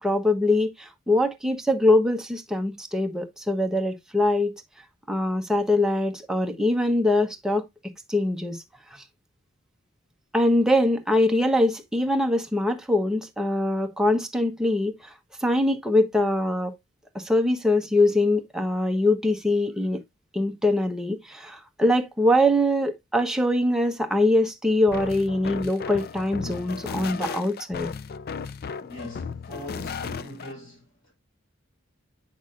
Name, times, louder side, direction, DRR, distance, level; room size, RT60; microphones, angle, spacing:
voice 1, 0.0-4.6 5.1-7.6 8.1-8.6 8.9-9.0 10.3-15.1 15.4-16.7 17.1-20.0 20.3-27.9, left 1 dB, 5° right, 1.0 m, -23 dB
sound 1, 24.9-30.5, left 5 dB, 50° left, 0.4 m, -35 dB
voice 2, 28.8-31.1, left 2 dB, 80° left, 4.6 m, -41 dB
8.5 x 6.1 x 2.5 m
head